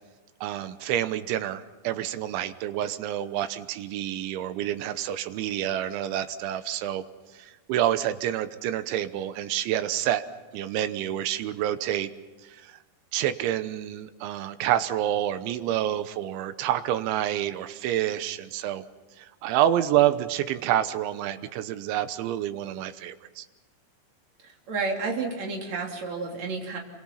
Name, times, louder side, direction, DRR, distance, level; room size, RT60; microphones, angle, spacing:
voice 1, 0.4-7.0 7.3-10.2 10.5-12.1 12.4-12.8 13.1-18.8 19.2-23.5, right 12 dB, 90° right, 11 dB, 3.4 m, -28 dB
voice 2, 24.4-26.8, right 4 dB, 40° right, 1 dB, 4.1 m, -31 dB
27.5 x 25.0 x 5.7 m, 1.2 s
omnidirectional pair, 5.3 m